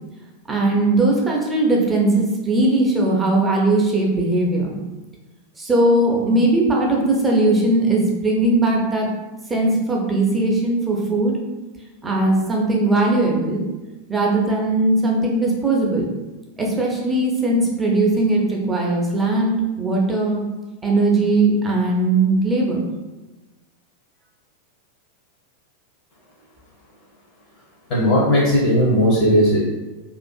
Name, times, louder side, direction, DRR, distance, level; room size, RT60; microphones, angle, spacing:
voice 1, 0.5-4.7 5.6-9.1 9.5-11.4 12.0-13.6 14.1-16.1 16.6-20.4 20.8-22.8, right 2 dB, 15° right, -2 dB, 0.5 m, -19 dB
voice 2, 27.9-29.6, equal, 45° left, -5 dB, 0.6 m, -16 dB
2.5 x 2.4 x 2.2 m, 1.1 s
figure-of-eight pair, 90°, 0 cm